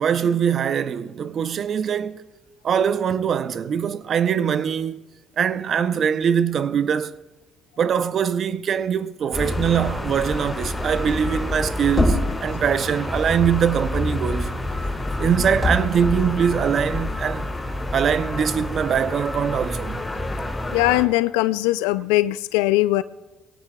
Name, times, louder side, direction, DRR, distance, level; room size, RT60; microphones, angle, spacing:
voice 1, 0.0-2.2 2.6-5.0 5.4-7.1 7.8-14.5 15.2-17.5 17.9-20.0, right 8 dB, 55° right, 0.6 m, -22 dB
sound 1, 9.3-21.0, left 1 dB, 20° left, 4.8 m, -27 dB
voice 2, 20.7-23.0, left 18 dB, 85° left, 0.4 m, -20 dB
21.5 x 17.5 x 2.3 m
supercardioid pair, 65°, 0 cm